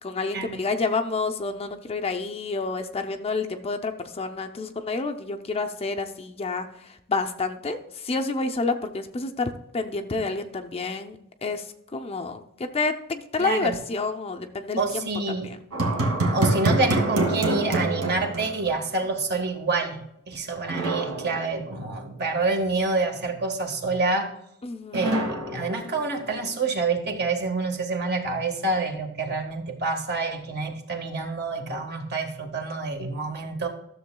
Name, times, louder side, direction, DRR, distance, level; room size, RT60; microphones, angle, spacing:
voice 1, 0.0-11.7 11.9-15.1 15.4-15.6 24.6-25.1, left 3 dB, 25° left, 5 dB, 0.5 m, -29 dB
voice 2, 13.4-13.7 14.8-15.5 16.3-24.3 24.9-33.7, right 3 dB, 50° right, 3 dB, 1.4 m, -27 dB
sound 1, 15.7-19.1 19.3-19.4 20.7-22.1 24.9-26.5, right 2 dB, 75° right, 1.7 m, -26 dB
13.0 x 7.0 x 2.2 m, 0.79 s
head